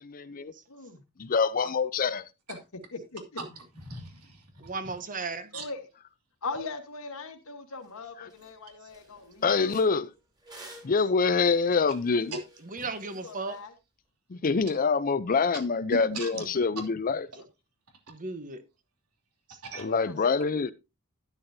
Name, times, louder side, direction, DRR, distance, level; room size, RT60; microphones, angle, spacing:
voice 1, 0.0-0.5 1.2-2.2 9.4-10.1 10.8-12.3 14.3-17.3 19.8-20.7, left 5 dB, 40° left, 0.5 m, -25 dB
voice 2, 0.7-1.0 2.5-2.6 2.9-3.2 5.5-5.9 6.4-9.5 13.2-13.7 14.8-14.9 19.9-20.7, left 3 dB, 65° left, 1.3 m, -40 dB
voice 3, 3.7-4.5 4.8-4.9 5.5-5.6 12.3-12.4 12.8-12.9 16.1-16.4 19.6-19.9, right 3 dB, 85° right, 2.9 m, -39 dB
voice 4, 4.6-5.5 12.7-13.6 18.1-18.6, right 3 dB, 35° right, 1.2 m, -35 dB
sound 1, 7.8-7.9 8.3-8.5 8.9-13.6, right 1 dB, 20° right, 3.5 m, -52 dB
12.5 x 9.7 x 2.7 m
head